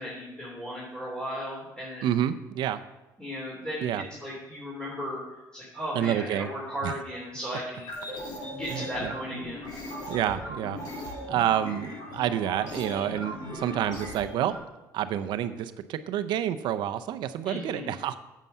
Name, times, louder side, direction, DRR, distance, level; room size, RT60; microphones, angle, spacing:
voice 1, 0.0-2.2 3.2-5.2 5.5-7.9 8.5-9.7 17.4-17.9, equal, 10° left, -6 dB, 3.3 m, -36 dB
voice 2, 2.0-2.8 3.8-4.0 5.9-6.5 6.8-6.9 8.7-9.1 10.1-14.5 14.9-18.2, right 11 dB, 75° right, 11 dB, 0.7 m, -29 dB
sound 1, 7.7-14.6, equal, 60° left, 4.3 m, -38 dB
9.2 x 7.4 x 5.6 m, 1.0 s
cardioid pair, 100°, 8 cm